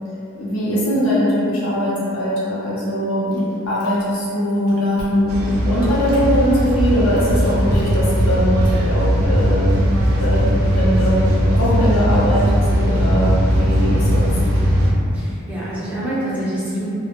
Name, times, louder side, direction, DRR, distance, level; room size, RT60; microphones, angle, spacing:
voice 1, 0.4-9.7 10.2-14.3, equal, 85° left, -7 dB, 0.7 m, -20 dB
Chewing mastication, 3.3-4.2 4.5-5.3 5.8-6.3 6.8-8.3, equal, 45° left, 0.6 m, -33 dB
sound 1, 5.3-14.9, equal, 85° right, 0.4 m, -18 dB
voice 2, 15.1-16.8, right 1 dB, 5° right, -10 dB, 0.4 m, -26 dB
2.1 x 2.1 x 2.8 m, 2.6 s
head